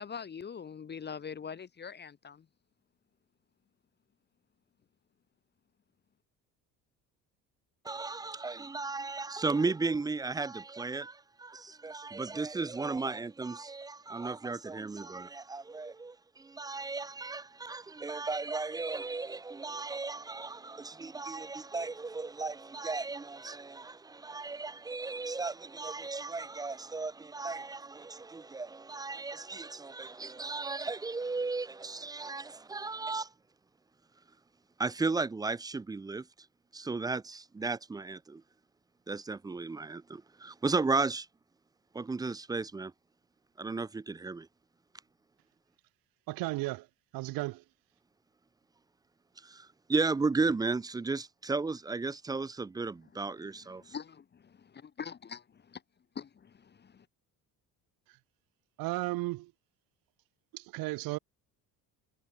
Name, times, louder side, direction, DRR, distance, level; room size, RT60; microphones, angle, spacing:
voice 1, 0.0-2.4 53.8-55.8 56.1-57.0, left 6 dB, 30° left, 1.2 m, -43 dB
voice 2, 7.8-33.3 34.8-36.3 36.7-38.4 39.1-41.3 41.9-42.9 43.6-44.5 49.4-53.9, right 3 dB, 10° right, 0.4 m, -35 dB
voice 3, 46.3-46.9 47.1-47.6 58.8-59.5 60.5-61.2, right 21 dB, 70° right, 0.8 m, -34 dB
cardioid pair, 120°, 36 cm